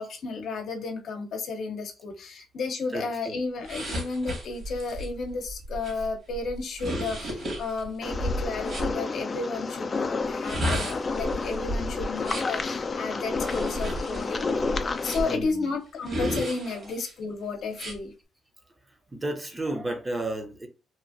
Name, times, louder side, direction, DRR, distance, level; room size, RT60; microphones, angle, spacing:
voice 1, 0.0-14.7 15.0-18.1, left 3 dB, 65° left, 0.7 m, -33 dB
voice 2, 2.9-3.4 6.0-6.1 7.2-7.3 13.2-13.3 15.3-15.7 16.6-16.9 19.1-20.7, right 1 dB, 20° right, 0.7 m, -33 dB
sound 1, 3.6-8.9 10.3-12.6 13.3-15.4 16.0-17.1 17.7-18.0, equal, 50° right, 1.4 m, -33 dB
sound 2, 8.0-15.4, left 4 dB, 35° left, 0.4 m, -30 dB
2.9 x 2.5 x 2.5 m
cardioid pair, 90°, 0 cm